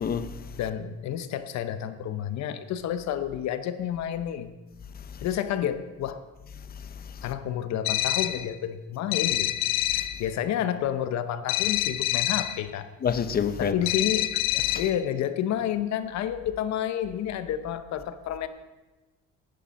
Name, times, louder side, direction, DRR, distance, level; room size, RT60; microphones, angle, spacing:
voice 1, 0.0-0.6 4.9-5.3 6.6-7.3 9.9-10.1 13.0-13.8 14.7-14.8, left 7 dB, 30° left, 0.7 m, -30 dB
voice 2, 0.6-4.5 5.2-6.2 7.2-9.5 9.9-12.9 13.6-14.3 14.7-18.5, left 10 dB, 60° left, 0.8 m, -30 dB
sound 1, 7.8-8.5 9.1-10.2 11.5-12.6 13.9-15.0, left 15 dB, 90° left, 0.6 m, -26 dB
10.5 x 9.9 x 5.2 m
cardioid pair, 130°, 31 cm